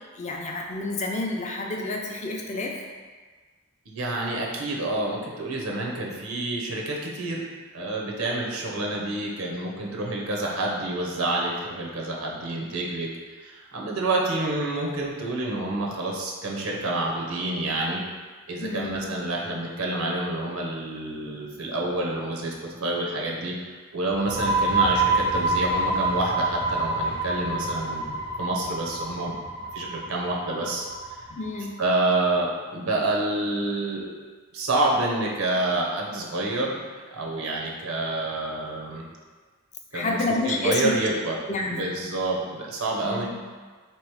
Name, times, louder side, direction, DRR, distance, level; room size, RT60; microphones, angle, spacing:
voice 1, 0.1-2.7 18.6-19.1 31.3-31.7 39.9-40.9 41.5-41.8 43.0-43.3, left 2 dB, 35° left, 0 dB, 0.5 m, -29 dB
voice 2, 3.9-13.1 13.4-18.0 18.5-29.4 29.7-30.9 31.8-34.1 34.5-36.8 37.1-39.0 39.9-40.2 40.4-41.4 41.7-43.3, right 2 dB, 80° right, -2 dB, 0.7 m, -28 dB
sound 1, 24.1-31.6, right 2 dB, 20° right, 0.5 m, -27 dB
3.3 x 3.0 x 4.7 m, 1.5 s
head